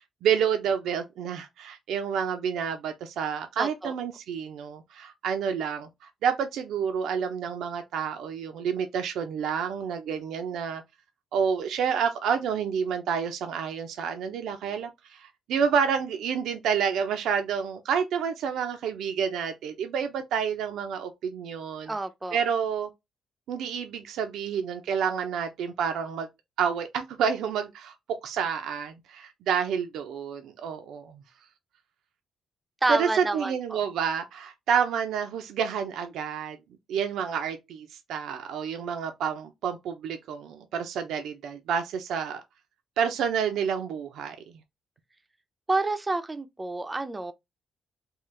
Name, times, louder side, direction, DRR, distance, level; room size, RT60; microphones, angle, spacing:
voice 1, 0.2-5.9 6.2-10.8 11.3-21.9 22.3-22.9 23.5-26.3 26.6-27.9 28.2-31.2 32.9-36.6 36.9-42.4 43.0-44.4, right 7 dB, 80° right, 0.6 m, -29 dB
voice 2, 3.6-3.9 21.9-22.4 32.8-33.8 45.7-47.3, right 2 dB, 20° right, 0.5 m, -29 dB
3.7 x 2.5 x 3.1 m
cardioid pair, 90°, 0 cm